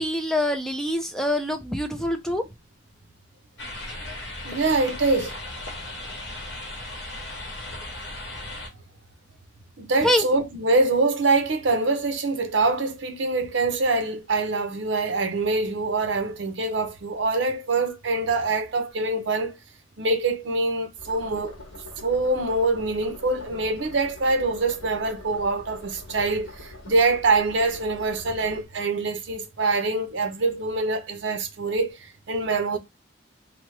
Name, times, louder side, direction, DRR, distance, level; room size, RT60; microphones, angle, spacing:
voice 1, 0.0-2.5 10.0-10.3, left 1 dB, 5° left, 0.4 m, -25 dB
sound 1, 3.6-8.7, left 1 dB, 65° left, 1.0 m, -36 dB
voice 2, 4.4-5.4 9.8-19.6 20.0-21.5 22.0-32.8, right 3 dB, 70° right, 0.7 m, -24 dB
sound 2, 21.0-28.6, left 2 dB, 90° left, 1.2 m, -44 dB
3.0 x 2.1 x 3.1 m
head